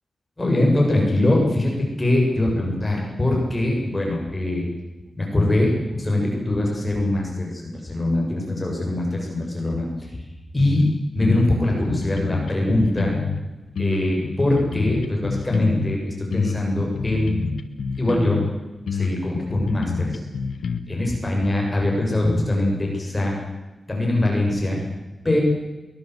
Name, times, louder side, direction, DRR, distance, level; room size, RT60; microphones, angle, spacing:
voice 1, 0.4-1.7 2.0-4.7 5.2-10.3 10.5-10.9 11.1-13.1 13.8-17.4 18.0-18.4 18.9-20.2 20.9-23.4 23.9-24.8 25.2-25.4, left 1 dB, 20° left, -1 dB, 7.4 m, -22 dB
sound 1, 10.6-10.9 11.2-13.4 13.8-16.0 16.3-18.5 18.9-20.8, left 5 dB, 85° left, 1.7 m, -27 dB
23.0 x 21.0 x 8.1 m, 1.1 s
wide cardioid pair, 120°, 0 cm